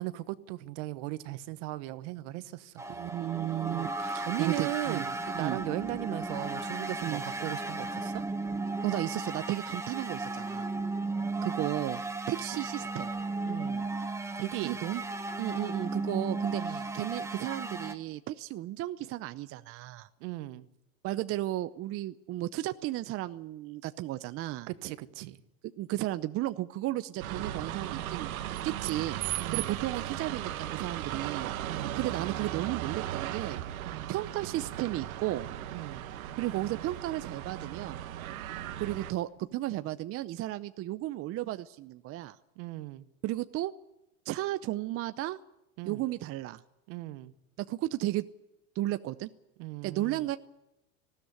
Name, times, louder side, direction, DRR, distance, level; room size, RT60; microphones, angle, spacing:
voice 1, 0.0-2.8 3.7-8.2 13.4-13.9 14.4-14.8 16.6-16.9 20.2-20.7 24.7-25.4 29.4-29.8 31.6-32.0 33.8-34.1 35.7-36.0 42.6-43.1 45.8-46.0 46.9-47.3 49.6-50.3, right 17 dB, 60° right, 1.3 m, -38 dB
sound 1, 2.8-17.9, right 3 dB, 5° right, 1.2 m, -35 dB
voice 2, 2.9-5.0 5.3-5.6 7.0-7.2 8.8-10.7 11.4-12.0 12.3-13.1 14.6-15.0 15.4-20.1 21.0-24.7 25.6-28.3 28.6-29.2 29.5-33.6 34.1-35.5 36.4-38.0 38.8-42.4 43.2-43.7 44.3-45.4 45.9-46.6 47.6-48.3 48.8-49.3 49.8-50.4, right 15 dB, 35° right, 0.7 m, -34 dB
sound 2, 27.2-39.1, right 12 dB, 80° right, 1.5 m, -37 dB
19.5 x 15.5 x 9.8 m
supercardioid pair, 120°, 41 cm